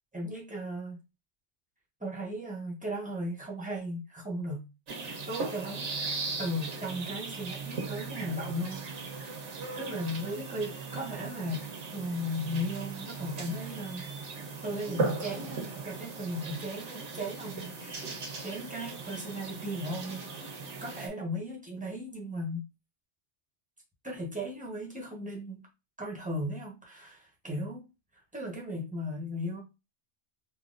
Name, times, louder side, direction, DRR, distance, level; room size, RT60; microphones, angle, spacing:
voice 1, 0.1-1.0 2.0-4.6 5.3-5.9 6.4-9.5 9.8-11.7 11.9-14.1 14.6-18.2 18.4-22.7 24.0-25.7 26.0-27.8 28.3-29.6, equal, 5° right, 1.0 m, -36 dB
sound 1, 4.9-21.1, right 4 dB, 80° right, 1.2 m, -38 dB
3.8 x 2.9 x 2.5 m
omnidirectional pair, 1.2 m